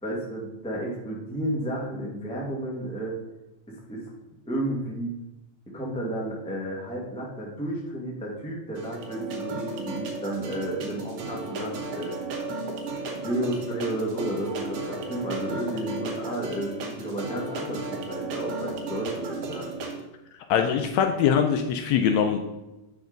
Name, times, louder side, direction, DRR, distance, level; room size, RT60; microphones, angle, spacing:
voice 1, 0.0-3.1 3.7-4.1 4.4-5.1 5.7-12.1 13.1-19.7, right 1 dB, 5° left, -3 dB, 0.5 m, -32 dB
sound 1, 8.8-20.0, right 3 dB, 65° right, 1.8 m, -34 dB
voice 2, 20.5-22.4, left 8 dB, 80° left, 5 dB, 1.7 m, -22 dB
7.7 x 5.4 x 3.9 m, 0.97 s
omnidirectional pair, 3.5 m